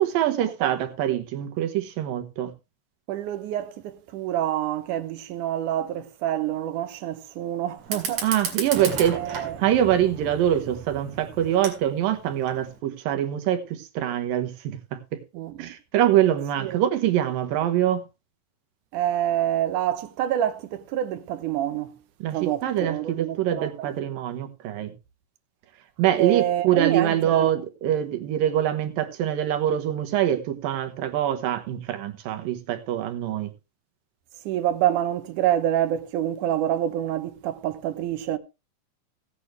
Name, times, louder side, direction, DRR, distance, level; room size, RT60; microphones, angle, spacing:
voice 1, 0.0-2.5 8.2-15.2 15.6-18.0 22.2-24.9 26.0-33.5, right 11 dB, 90° right, 2.9 m, -24 dB
voice 2, 3.1-8.2 9.1-9.6 15.3-15.8 16.6-16.8 18.9-22.0 22.3-23.9 26.2-27.5 34.5-38.4, right 11 dB, 70° right, 2.3 m, -27 dB
Fire, 7.8-12.8, right 5 dB, 50° right, 3.2 m, -35 dB
16.5 x 8.6 x 3.2 m
omnidirectional pair, 3.9 m